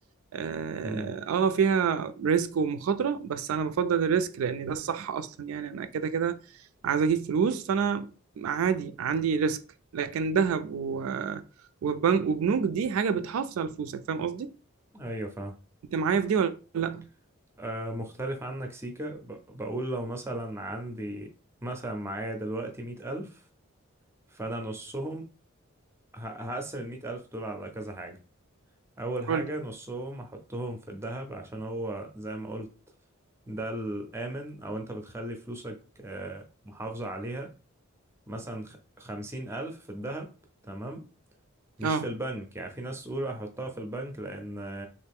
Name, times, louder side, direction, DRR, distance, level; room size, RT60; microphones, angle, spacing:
voice 1, 0.3-6.4 6.8-8.1 8.4-9.6 9.9-11.4 11.8-14.5 15.9-17.1 29.3-29.5 41.8-42.1, right 6 dB, 75° right, 0.3 m, -27 dB
voice 2, 14.9-15.5 17.6-21.3 21.6-23.4 24.3-25.3 26.1-28.2 29.0-32.7 33.5-37.5 38.3-40.3 40.7-41.0 41.8-44.9, right 1 dB, 10° right, 0.4 m, -36 dB
3.2 x 2.5 x 3.4 m
head